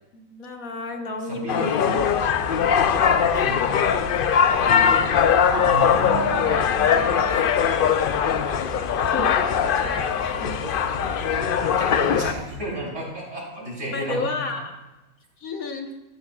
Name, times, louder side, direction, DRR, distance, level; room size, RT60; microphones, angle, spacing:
voice 1, 0.1-2.0 3.7-3.8 9.0-10.8 13.9-14.8 15.4-15.9, left 3 dB, 85° left, 3 dB, 1.7 m, -32 dB
voice 2, 1.2-2.0 2.5-3.8 4.5-5.1 5.5-7.5 10.5-10.6 10.9-11.2 11.8-14.3, right 1 dB, 60° right, -4 dB, 4.3 m, -32 dB
sound 1, 1.5-12.3, left 8 dB, 65° left, 0.5 m, -21 dB
sound 2, 2.0-12.6, equal, 10° right, 2.8 m, -37 dB
14.0 x 13.5 x 2.4 m, 1.0 s
omnidirectional pair, 1.4 m